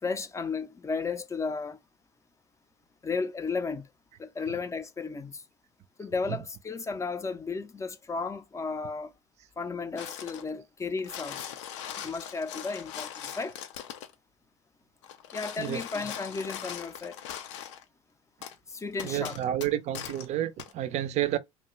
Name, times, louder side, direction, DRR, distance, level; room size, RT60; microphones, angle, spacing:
voice 1, 0.0-1.8 3.0-3.9 4.2-5.4 6.0-9.1 9.6-11.6 12.0-13.6 15.3-17.2 18.7-19.4, left 4 dB, 20° left, 0.5 m, -34 dB
sound 1, 10.0-10.5 10.9-14.1 15.0-17.8 18.4-18.6 19.0-20.3 20.6-20.7, left 9 dB, 75° left, 0.5 m, -40 dB
voice 2, 19.0-21.4, right 12 dB, 45° right, 0.4 m, -30 dB
2.5 x 2.2 x 3.0 m
hypercardioid pair, 75°, 15 cm